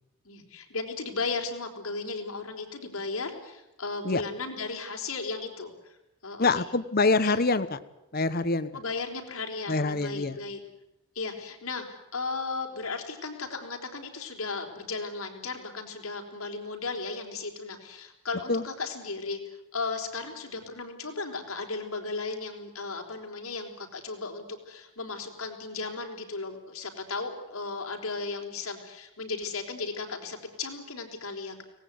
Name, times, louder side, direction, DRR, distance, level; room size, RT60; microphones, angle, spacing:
voice 1, 0.2-6.0 6.2-6.7 7.2-7.4 8.7-10.6 11.2-19.4 19.7-31.6, left 4 dB, 75° left, 2 dB, 4.1 m, -35 dB
voice 2, 6.4-7.8 8.1-8.7 9.7-10.4 18.5-18.6, left 3 dB, 45° left, 13 dB, 0.9 m, -25 dB
24.5 x 19.0 x 9.4 m, 0.92 s
head